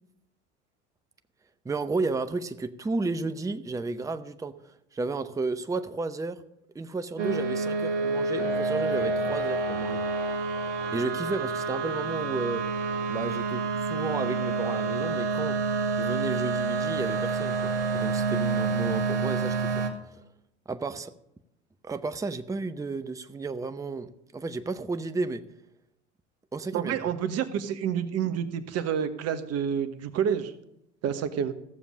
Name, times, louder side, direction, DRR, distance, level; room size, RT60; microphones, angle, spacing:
voice 1, 1.6-4.5 4.9-6.4 6.7-10.0 10.9-12.7 13.1-15.6 16.0-19.8 20.7-21.1 21.8-25.4 26.5-27.1, right 3 dB, 10° right, 10 dB, 0.7 m, -33 dB
sound 1, 7.2-19.9, right 4 dB, 80° right, 1.5 m, -28 dB
voice 2, 26.7-30.5 31.0-31.5, right 8 dB, 45° right, 11 dB, 1.2 m, -28 dB
15.0 x 7.1 x 6.3 m, 0.82 s
hypercardioid pair, 75°, 35 cm